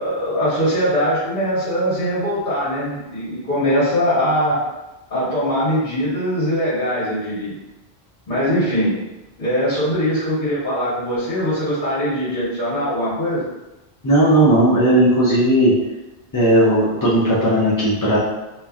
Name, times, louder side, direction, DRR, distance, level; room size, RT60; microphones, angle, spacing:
voice 1, 0.0-4.6 5.1-7.6 8.3-9.0 9.4-13.4, equal, 55° left, -11 dB, 1.5 m, -21 dB
voice 2, 14.0-15.7 16.3-18.2, right 1 dB, 35° left, -9 dB, 0.3 m, -16 dB
2.9 x 2.5 x 2.3 m, 1.0 s
omnidirectional pair, 1.1 m